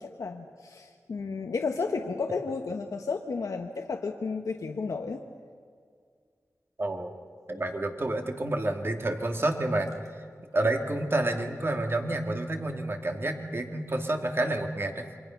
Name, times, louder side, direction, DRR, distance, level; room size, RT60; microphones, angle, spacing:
voice 1, 0.0-5.2, left 4 dB, 85° left, 4 dB, 1.1 m, -32 dB
voice 2, 6.8-7.1 7.5-10.2 10.5-15.1, right 2 dB, 45° right, 3 dB, 2.5 m, -29 dB
28.0 x 24.0 x 6.0 m, 2.1 s
wide cardioid pair, 65°, 6 cm